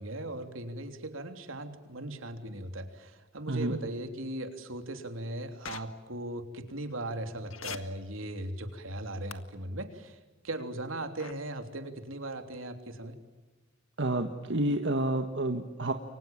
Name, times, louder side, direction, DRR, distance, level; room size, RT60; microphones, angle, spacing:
voice 1, 0.0-10.2 10.4-13.2, right 1 dB, 80° right, 6 dB, 3.4 m, -38 dB
voice 2, 3.5-3.8 14.0-15.9, right 1 dB, 60° right, 5 dB, 1.7 m, -29 dB
sound 1, 5.6-5.8 7.5-7.8 9.3-9.4 11.2-11.3, left 7 dB, 85° left, 1.8 m, -39 dB
29.5 x 24.5 x 7.4 m, 1.2 s
head